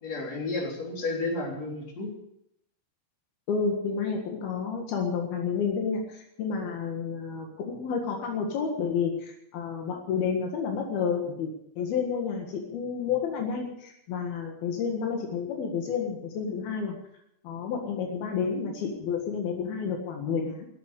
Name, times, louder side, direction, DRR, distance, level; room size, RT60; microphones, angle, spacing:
voice 1, 0.0-2.1, left 2 dB, 45° left, -1 dB, 4.9 m, -32 dB
voice 2, 3.5-17.0 17.4-20.7, left 6 dB, 75° left, 1 dB, 3.7 m, -30 dB
14.5 x 11.5 x 8.2 m, 0.76 s
omnidirectional pair, 4.4 m